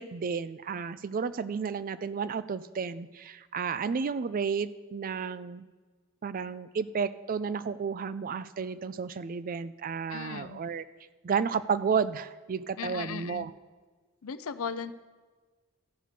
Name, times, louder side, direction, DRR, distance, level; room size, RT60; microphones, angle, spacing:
voice 1, 0.0-5.6 6.2-10.8 11.2-13.5, right 6 dB, 40° right, 15 dB, 0.4 m, -32 dB
voice 2, 10.1-10.6 12.8-13.5 14.2-14.9, left 6 dB, 80° left, 13 dB, 0.5 m, -37 dB
13.5 x 6.6 x 5.0 m, 1.4 s
head